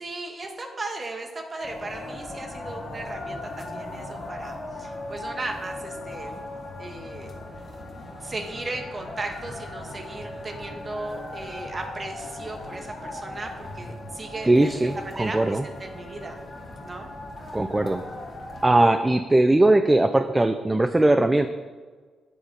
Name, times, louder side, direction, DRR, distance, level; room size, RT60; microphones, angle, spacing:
voice 1, 0.0-6.4 6.8-7.3 8.1-16.4 16.8-17.1, right 2 dB, 40° right, 3 dB, 0.9 m, -36 dB
sound 1, 1.6-18.7, left 2 dB, 50° left, 1.3 m, -38 dB
voice 2, 14.5-15.6 17.5-18.0 18.6-21.5, right 2 dB, 20° right, 7 dB, 0.4 m, -20 dB
7.2 x 3.8 x 5.1 m, 1.5 s
hypercardioid pair, 45°, 0 cm